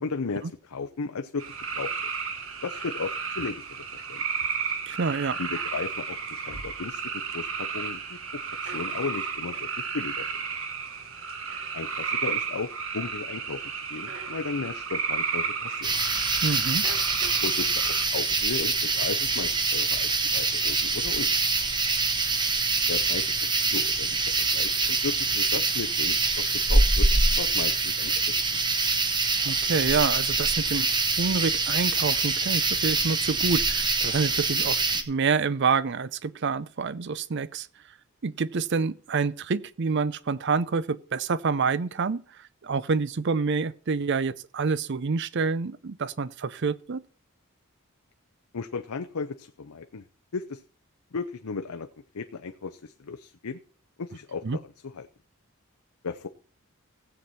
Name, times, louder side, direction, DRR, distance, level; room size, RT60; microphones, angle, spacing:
voice 1, 0.0-1.5 1.7-1.9 2.6-4.2 5.4-8.2 8.6-10.3 11.7-15.9 17.4-21.3 22.9-23.3 23.6-24.2 24.5-27.1 27.4-28.3 48.5-50.0 50.3-50.6 51.1-51.9 52.1-53.6 54.0-55.1 56.0-56.3, left 4 dB, 85° left, 0.7 m, -35 dB
sound 1, 1.4-18.1, right 6 dB, 70° right, 1.5 m, -33 dB
voice 2, 4.9-5.4 16.4-16.8 29.4-30.9 31.2-37.7 38.2-42.2 42.6-47.0 54.4-54.6, right 5 dB, 55° right, 0.5 m, -27 dB
sound 2, 15.8-35.0, right 3 dB, 20° right, 1.0 m, -25 dB
16.0 x 7.9 x 4.2 m
head